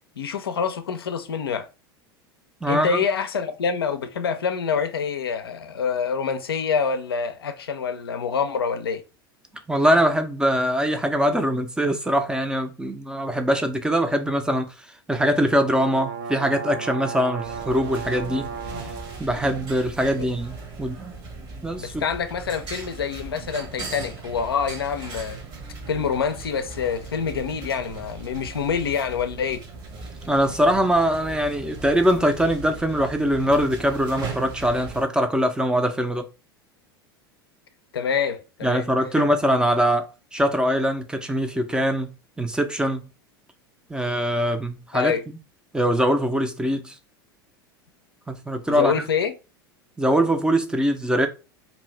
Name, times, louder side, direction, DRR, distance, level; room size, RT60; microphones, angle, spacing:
voice 1, 0.2-1.7 2.7-9.0 18.7-18.9 20.2-20.3 21.8-25.4 25.9-29.6 37.9-38.8 39.2-39.3 44.9-45.2 48.7-49.3, left 6 dB, 80° left, 0.4 m, -26 dB
voice 2, 2.6-3.0 9.7-18.5 19.2-21.2 21.6-22.0 30.3-36.3 38.6-42.1 42.4-43.0 43.9-45.4 45.7-47.0 48.3-48.9 50.0-51.3, equal, 5° right, 0.4 m, -22 dB
sound 1, 15.3-19.2, right 6 dB, 65° right, 0.6 m, -35 dB
sound 2, 17.4-35.1, right 3 dB, 35° right, 0.9 m, -38 dB
2.7 x 2.6 x 3.2 m
figure-of-eight pair, 80°, 12 cm